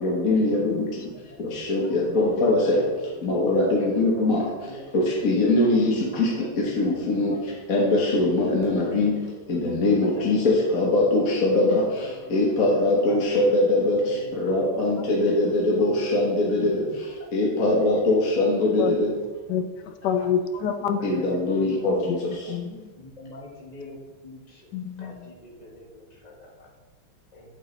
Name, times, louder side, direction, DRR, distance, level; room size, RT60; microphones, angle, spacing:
voice 1, 0.0-0.7 1.4-1.8 2.1-2.8 3.2-4.4 5.2-6.3 6.8-7.3 7.7-9.1 9.5-11.8 12.3-14.0 14.4-16.8 17.3-19.1 21.0-22.1, left 2 dB, 50° left, -3 dB, 1.5 m, -22 dB
voice 2, 19.5-21.0 22.5-22.9 24.7-25.3, left 7 dB, 70° left, 8 dB, 1.2 m, -27 dB
voice 3, 23.0-24.0 24.2-24.4 25.0-25.1 25.4-25.8 27.3-27.4, left 2 dB, 25° left, -2 dB, 1.3 m, -42 dB
8.8 x 8.0 x 3.3 m, 1.4 s
omnidirectional pair, 2.2 m